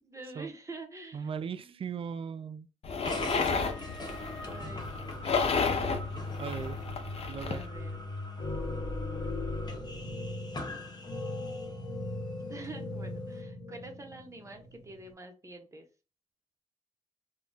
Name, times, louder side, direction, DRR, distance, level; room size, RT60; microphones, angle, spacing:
voice 1, 0.0-1.3 1.6-1.8 3.7-4.1 4.4-5.7 7.5-8.2 9.0-9.4 12.5-15.9, right 2 dB, 25° right, 0.9 m, -47 dB
voice 2, 1.1-2.7 6.4-6.8 7.3-7.6, right 6 dB, 50° right, 0.3 m, -37 dB
sound 1, 2.8-7.7, left 5 dB, 60° left, 0.6 m, -32 dB
sound 2, 3.0-11.8, left 2 dB, 35° left, 0.9 m, -40 dB
sound 3, 7.7-8.1 8.4-15.1, left 2 dB, 75° left, 0.9 m, -39 dB
2.3 x 2.1 x 3.8 m
cardioid pair, 70°, 12 cm